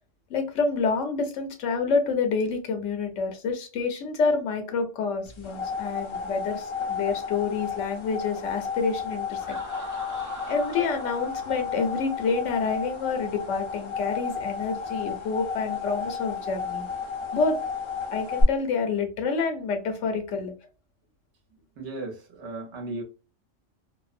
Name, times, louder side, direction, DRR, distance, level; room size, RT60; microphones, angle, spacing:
voice 1, 0.3-9.6 10.5-16.9 17.3-17.6 18.1-20.5, left 4 dB, 75° left, 1.0 m, -28 dB
sound 1, 5.3-18.4, left 5 dB, 45° left, 0.3 m, -33 dB
Laughter, 9.4-13.1, right 2 dB, 25° right, 0.4 m, -44 dB
voice 2, 21.8-23.0, right 2 dB, 65° right, 1.1 m, -36 dB
2.6 x 2.0 x 2.4 m
omnidirectional pair, 1.3 m